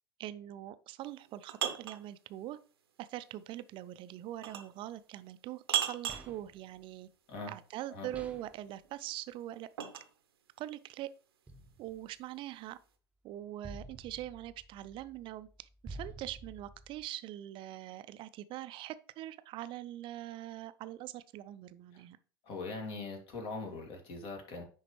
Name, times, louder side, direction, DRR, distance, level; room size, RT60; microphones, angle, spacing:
voice 1, 0.2-2.6 3.0-7.1 7.5-9.7 10.6-11.1 11.8-12.8 13.2-22.2, right 13 dB, 40° right, 13 dB, 0.5 m, -43 dB
sound 1, 1.0-2.0 4.4-4.8 5.7-6.3 8.6-10.1, right 10 dB, 70° right, 0.8 m, -35 dB
sound 2, 6.1-6.7 8.1-8.7 11.5-12.1 13.6-17.0, right 2 dB, 10° right, 0.9 m, -50 dB
voice 2, 22.4-24.6, left 3 dB, 45° left, 3 dB, 2.1 m, -41 dB
10.0 x 3.7 x 3.1 m, 0.39 s
figure-of-eight pair, 80°, 13 cm